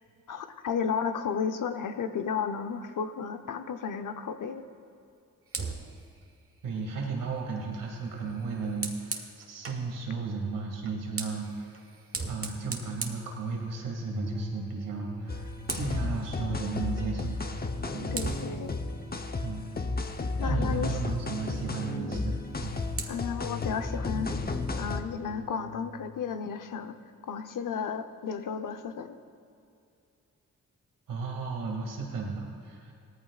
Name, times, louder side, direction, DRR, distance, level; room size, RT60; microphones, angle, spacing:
voice 1, 0.3-4.6 18.1-18.7 20.4-20.9 23.1-24.3 24.8-27.0 27.2-29.2, left 6 dB, 75° left, 8 dB, 0.8 m, -33 dB
Fire, 5.5-9.9 10.8-14.1 14.4-14.7 15.0-16.1 17.5-17.6 18.1-20.5 22.3-23.1, right 4 dB, 45° right, 1.5 m, -41 dB
voice 2, 6.6-11.7 12.3-15.4 15.7-17.4 17.9-18.1 19.4-19.7 20.4-22.8 31.1-32.9, right 4 dB, 90° right, 0 dB, 2.3 m, -34 dB
sound 1, 14.0-25.9, equal, ahead, 2.5 m, -44 dB
sound 2, 15.3-25.0, left 3 dB, 30° left, 0.9 m, -33 dB
17.5 x 14.0 x 2.4 m, 2.5 s
cardioid pair, 55°, 32 cm